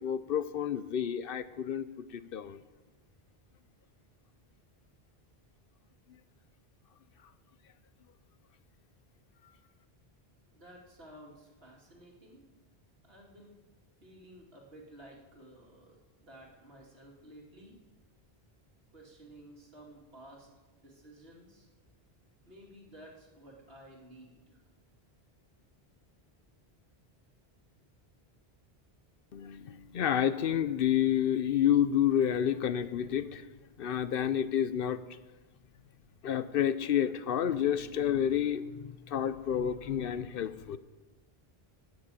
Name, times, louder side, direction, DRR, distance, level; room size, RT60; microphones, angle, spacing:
voice 1, 0.0-2.6 29.3-33.4 33.8-35.0 36.2-40.8, left 9 dB, 65° left, 14 dB, 0.8 m, -29 dB
voice 2, 10.5-12.5 13.0-13.5 14.0-17.8 18.9-20.5 20.7-21.7 22.5-24.6, right 1 dB, 70° right, -2 dB, 2.8 m, -54 dB
17.5 x 6.3 x 7.6 m, 1.2 s
omnidirectional pair, 1.0 m